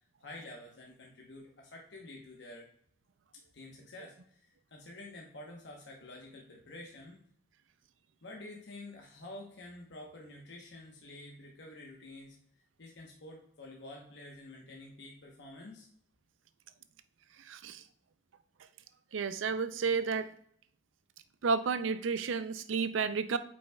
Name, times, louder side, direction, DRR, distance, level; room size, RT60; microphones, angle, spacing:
voice 1, 0.2-2.7 3.5-7.3 8.2-12.4 12.8-15.9, left 2 dB, 60° left, -1 dB, 1.0 m, -49 dB
voice 2, 17.4-17.8 19.1-20.3 21.4-23.4, right 5 dB, 80° right, 12 dB, 0.5 m, -31 dB
8.4 x 5.4 x 2.3 m, 0.64 s
head